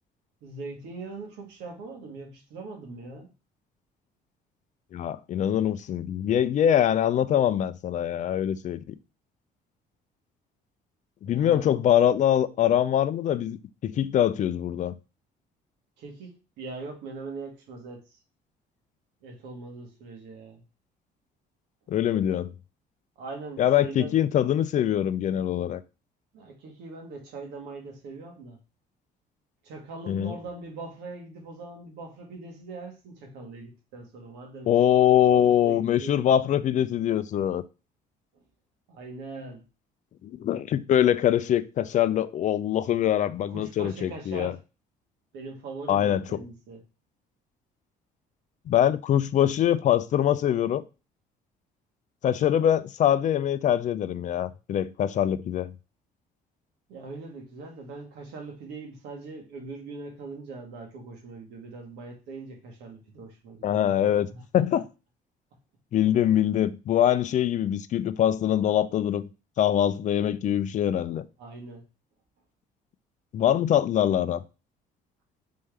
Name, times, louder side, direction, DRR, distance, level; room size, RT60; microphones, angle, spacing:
voice 1, 0.4-3.3 11.2-11.7 16.0-18.2 19.2-20.6 23.2-24.1 26.3-28.6 29.6-35.0 35.3-36.2 38.9-39.6 43.5-44.6 45.3-46.8 56.9-64.4 64.7-64.8 71.4-71.8, right 3 dB, 90° right, 1.5 m, -41 dB
voice 2, 4.9-8.9 11.2-14.9 21.9-22.5 23.6-25.8 30.1-30.3 34.7-37.6 40.2-44.5 45.9-46.2 48.7-50.8 52.2-55.7 63.6-64.3 64.5-64.8 65.9-69.3 69.6-71.2 73.3-74.4, left 10 dB, 45° left, 0.4 m, -23 dB
4.2 x 3.5 x 3.3 m
cardioid pair, 110°, 17 cm